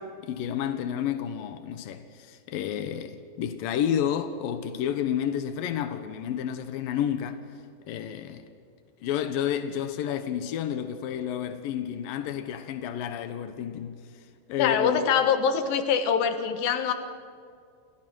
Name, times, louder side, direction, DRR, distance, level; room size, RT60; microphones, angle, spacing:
voice 1, 0.0-7.4 7.9-8.4 9.0-14.0 14.5-15.1, left 9 dB, 85° left, 2.0 m, -30 dB
voice 2, 14.6-16.9, left 7 dB, 65° left, 2.5 m, -24 dB
29.0 x 29.0 x 6.3 m
omnidirectional pair, 5.8 m